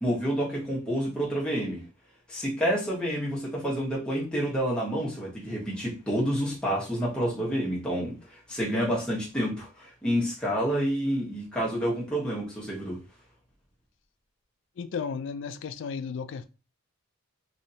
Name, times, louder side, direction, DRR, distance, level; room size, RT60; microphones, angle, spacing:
voice 1, 0.0-1.8 2.3-8.1 8.5-13.0, equal, 5° left, 1.1 m, -28 dB
voice 2, 14.8-16.5, left 6 dB, 60° left, 0.3 m, -34 dB
3.2 x 2.7 x 2.7 m
head